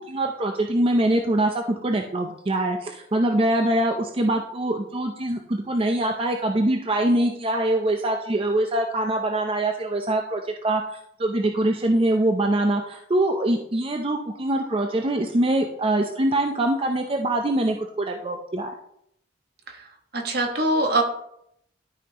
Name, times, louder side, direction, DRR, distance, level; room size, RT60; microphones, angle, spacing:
voice 1, 0.1-18.7, right 1 dB, 30° right, 3 dB, 0.5 m, -23 dB
voice 2, 20.1-21.0, right 2 dB, 60° right, 3 dB, 1.3 m, -23 dB
12.5 x 5.4 x 2.9 m, 0.75 s
head